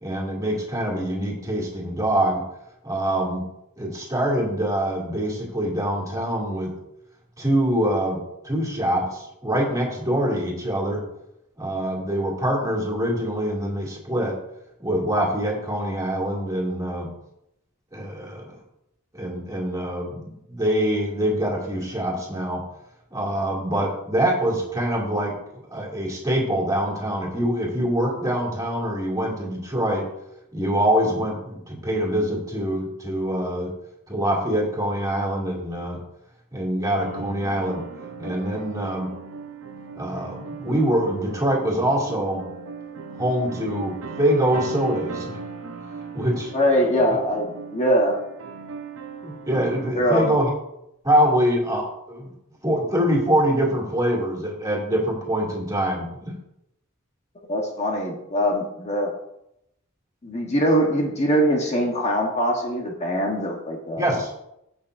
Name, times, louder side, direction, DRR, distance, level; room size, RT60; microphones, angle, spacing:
voice 1, 0.0-2.4 2.8-3.4 3.8-6.7 7.4-11.0 11.6-14.4 14.8-17.1 17.9-18.6 19.1-22.6 23.1-30.1 30.5-33.7 34.1-36.0 36.5-37.8 38.2-39.1 39.9-42.4 43.2-45.4 46.1-46.5 49.2-50.5 51.0-52.3 52.6-56.3 64.0-64.4, right 1 dB, 15° right, -3 dB, 2.5 m, -24 dB
sound 1, 36.9-49.9, right 4 dB, 70° right, 0.8 m, -37 dB
voice 2, 46.5-48.2 49.9-50.3 57.5-59.1 60.2-64.2, equal, 30° left, 0 dB, 1.2 m, -22 dB
15.0 x 6.2 x 2.6 m, 0.81 s
head